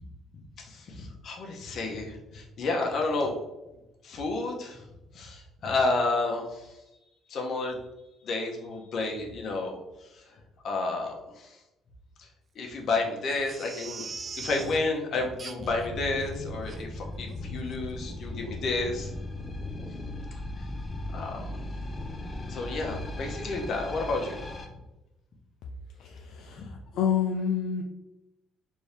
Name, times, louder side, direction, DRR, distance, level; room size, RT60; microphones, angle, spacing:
voice 1, 0.6-3.4 4.0-4.9 5.1-6.8 7.3-7.8 8.2-10.3 10.6-11.6 12.2-12.3 12.5-14.1 14.4-19.1 21.1-21.6 22.5-24.4 26.6-26.7, left 3 dB, 50° left, 1 dB, 0.9 m, -31 dB
Crying sobbing, 13.3-14.8 15.4-15.9 16.2-16.3 16.7-16.8 17.3-17.4 17.7-17.8, right 4 dB, 30° right, 0.3 m, -41 dB
sound 1, 15.6-24.7, left 1 dB, 20° left, 0.6 m, -37 dB
voice 2, 26.0-27.8, left 7 dB, 70° left, 2 dB, 0.4 m, -29 dB
4.3 x 2.8 x 3.3 m, 0.95 s
cardioid pair, 130°, 0 cm